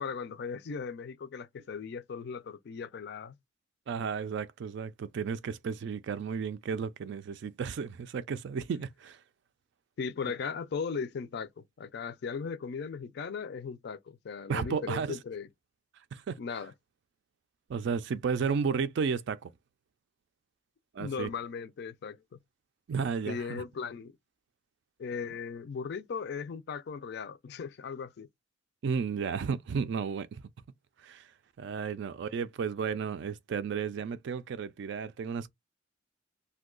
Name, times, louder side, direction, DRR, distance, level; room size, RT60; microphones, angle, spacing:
voice 1, 0.0-3.3 10.0-15.5 16.4-16.7 21.0-22.4 23.3-24.1 25.0-28.3, left 5 dB, 60° left, 0.4 m, -37 dB
voice 2, 3.9-9.2 14.5-15.2 16.1-16.4 17.7-19.5 20.9-21.3 22.9-23.6 28.8-30.4 31.0-31.2 31.6-35.5, right 6 dB, 65° right, 0.3 m, -33 dB
2.6 x 2.3 x 3.7 m
head